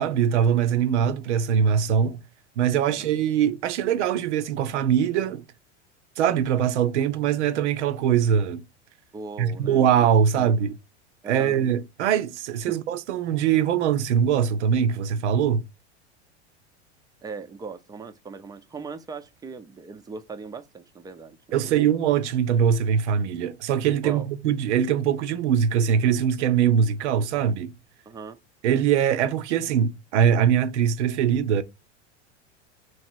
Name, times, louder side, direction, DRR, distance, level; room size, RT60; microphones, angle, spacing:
voice 1, 0.0-2.2 2.6-5.4 6.2-8.6 9.4-10.7 11.3-15.7 21.5-27.7 28.6-31.6, right 8 dB, 70° right, 0.7 m, -22 dB
voice 2, 9.1-9.9 10.3-10.5 11.2-11.6 17.2-21.4 21.6-21.9 24.0-24.3 28.1-28.4, right 4 dB, 10° right, 0.5 m, -39 dB
3.2 x 3.1 x 4.5 m
hypercardioid pair, 95°, 36 cm